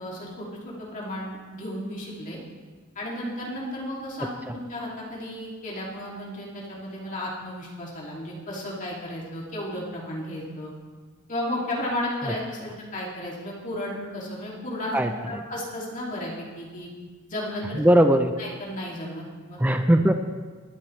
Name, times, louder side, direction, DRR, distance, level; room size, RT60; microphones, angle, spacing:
voice 1, 0.0-2.4 2.9-10.7 11.3-14.9 15.2-16.9 17.3-17.8 18.4-19.6, left 1 dB, 35° left, -5 dB, 2.7 m, -34 dB
voice 2, 14.9-15.4 17.7-18.3 19.6-20.1, right 1 dB, 10° right, 6 dB, 0.6 m, -20 dB
21.5 x 12.5 x 3.3 m, 1.4 s
head